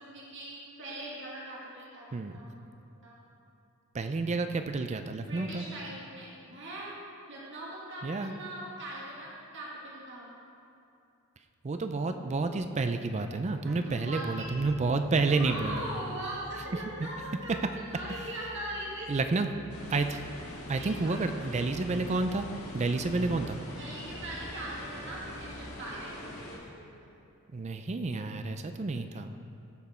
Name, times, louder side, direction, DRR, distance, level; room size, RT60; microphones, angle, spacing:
voice 1, 0.0-2.7 3.0-3.2 5.3-6.9 7.3-10.4 13.6-14.5 15.3-17.6 17.9-19.1 20.7-21.2 23.7-27.1, right 1 dB, 55° right, -5 dB, 2.0 m, -41 dB
voice 2, 3.9-5.6 8.0-8.3 11.6-15.8 17.0-17.1 19.1-19.5 19.9-20.2 20.7-22.5 22.7-23.6 27.5-29.3, right 3 dB, 30° right, 8 dB, 0.4 m, -30 dB
sound 1, 14.4-25.7, left 1 dB, 85° right, 1.2 m, -51 dB
sound 2, 19.7-26.6, left 1 dB, 75° left, 1.9 m, -44 dB
16.5 x 6.2 x 4.4 m, 2.7 s
head